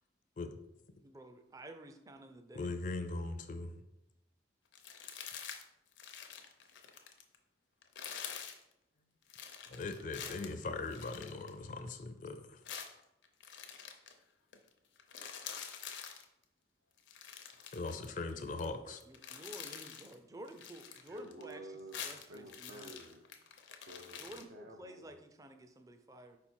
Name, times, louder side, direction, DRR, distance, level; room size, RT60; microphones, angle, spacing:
voice 1, 1.0-2.8 19.1-21.6 22.0-22.9 24.2-26.4, right 1 dB, 20° right, 7 dB, 0.4 m, -51 dB
voice 2, 2.5-3.7 9.7-12.6 17.7-19.0, left 3 dB, 45° left, 8 dB, 0.4 m, -40 dB
sound 1, 4.7-5.6 5.9-7.4 7.8-8.6 9.3-11.9 12.7-14.1 14.5-14.7 15.0-16.2 17.0-18.7 19.0-20.1 20.5-21.5 21.8-24.4, left 8 dB, 85° left, 0.7 m, -47 dB
voice 3, 21.1-23.4 23.8-25.2, right 1 dB, 70° right, 1 dB, 0.5 m, -51 dB
5.0 x 4.2 x 4.4 m, 0.88 s
head